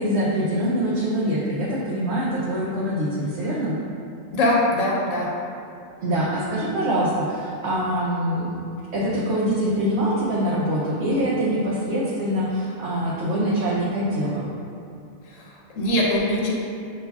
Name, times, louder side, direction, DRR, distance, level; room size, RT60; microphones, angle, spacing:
voice 1, 0.0-3.8 6.0-8.6 8.9-14.5, equal, 65° right, -6 dB, 0.9 m, -24 dB
voice 2, 4.3-5.3 15.2-16.5, left 1 dB, 85° left, -3 dB, 1.1 m, -22 dB
6.8 x 3.0 x 2.3 m, 2.6 s
omnidirectional pair, 1.3 m